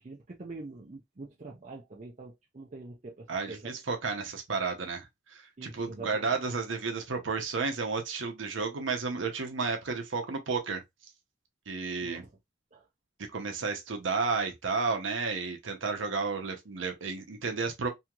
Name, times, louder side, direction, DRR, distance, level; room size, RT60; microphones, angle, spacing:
voice 1, 0.0-3.8 5.6-6.4 12.0-12.3 12.7-12.9, right 3 dB, 35° right, 0.5 m, -45 dB
voice 2, 3.3-5.1 5.3-10.8 11.7-12.2 13.3-17.9, right 4 dB, 75° right, 0.7 m, -32 dB
3.0 x 2.7 x 2.3 m
head